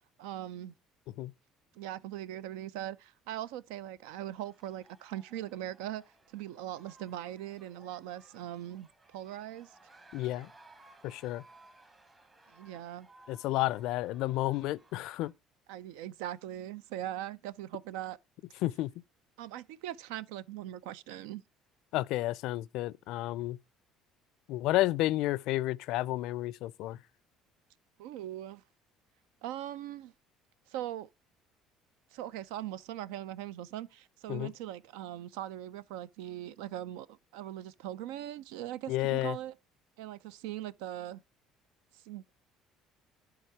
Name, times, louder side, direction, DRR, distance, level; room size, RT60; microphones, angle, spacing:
voice 1, 0.2-0.7 1.7-9.8 12.5-13.1 15.7-18.2 19.4-21.4 28.0-28.6 29.4-30.1 30.7-31.1 32.1-39.6 40.0-41.2 41.9-42.3, right 12 dB, 85° right, 0.4 m, -40 dB
sound 1, 4.3-15.3, right 2 dB, 25° right, 1.9 m, -60 dB
voice 2, 10.1-10.5 11.0-11.4 13.3-15.3 18.6-18.9 21.9-23.6 24.5-27.0 34.3-34.5 38.9-39.4, left 16 dB, 75° left, 0.4 m, -31 dB
11.0 x 3.8 x 4.6 m
supercardioid pair, 85°, 0 cm